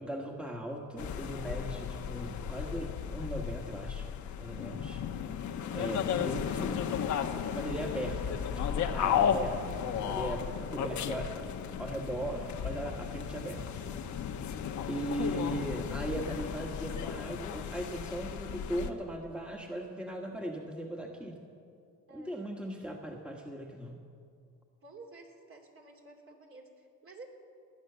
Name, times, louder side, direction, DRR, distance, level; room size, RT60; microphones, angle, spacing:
voice 1, 0.0-4.1 4.4-5.0 5.7-6.8 7.5-11.5 11.8-13.8 14.9-21.4 22.1-24.0, right 1 dB, 5° right, 1 dB, 1.5 m, -38 dB
sound 1, 1.0-18.9, left 8 dB, 70° left, 1.0 m, -34 dB
voice 2, 4.8-5.3 10.7-11.4 14.9-15.4 22.1-22.5 24.8-27.3, right 3 dB, 45° right, 0 dB, 3.0 m, -53 dB
19.5 x 9.3 x 6.9 m, 2.3 s
cardioid pair, 90°, 30 cm